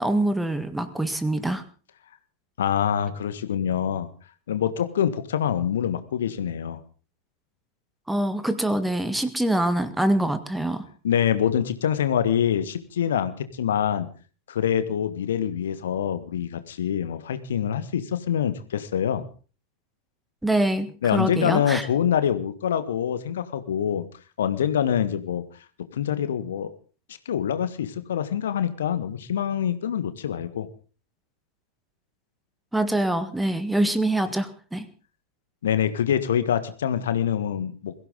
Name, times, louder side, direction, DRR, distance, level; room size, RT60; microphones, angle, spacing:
voice 1, 0.0-1.6 8.1-10.8 20.4-21.9 32.7-34.9, right 1 dB, 5° right, 11 dB, 1.6 m, -24 dB
voice 2, 2.6-4.1 4.5-6.8 11.0-14.1 14.5-19.3 21.0-24.0 24.4-25.4 25.9-26.7 27.2-30.7 35.6-37.9, left 9 dB, 60° left, 11 dB, 1.5 m, -25 dB
22.5 x 15.5 x 3.9 m, 0.38 s
figure-of-eight pair, 90°, 0 cm